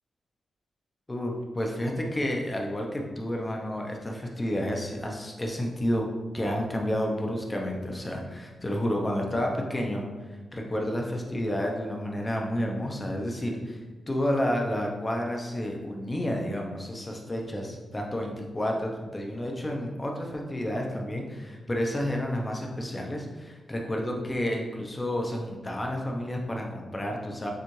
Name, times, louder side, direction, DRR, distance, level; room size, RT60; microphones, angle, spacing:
voice 1, 1.1-6.1 6.3-10.1 10.5-13.8 14.1-27.5, equal, 15° left, 0 dB, 0.6 m, -30 dB
6.8 x 2.4 x 3.1 m, 1.3 s
wide cardioid pair, 155°, 0 cm